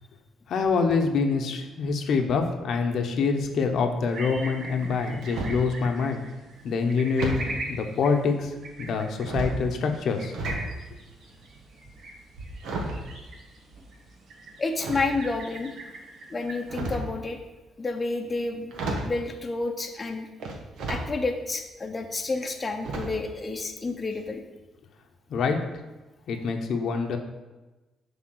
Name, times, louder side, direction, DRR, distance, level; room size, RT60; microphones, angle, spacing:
voice 1, 0.5-6.2 6.6-10.3 25.3-25.6 26.3-27.2, left 5 dB, 70° left, 4 dB, 0.9 m, -26 dB
sound 1, 4.1-16.8, right 2 dB, 65° right, 1.6 m, -42 dB
sound 2, 4.8-5.7 7.2-7.6 8.4-8.9 9.2-10.7 11.0-14.0 14.8-15.5 16.5-17.2 18.3-18.4 18.7-19.2 20.4-21.1 21.6-21.7 22.8-23.3 23.6-23.8 24.1-24.2, right 2 dB, 80° right, 1.3 m, -33 dB
voice 2, 14.6-15.7 16.3-17.4 17.8-18.7 19.0-20.3 20.9-24.4, left 3 dB, 30° left, 3 dB, 0.9 m, -30 dB
7.4 x 3.6 x 6.3 m, 1.1 s
cardioid pair, 90°, 0 cm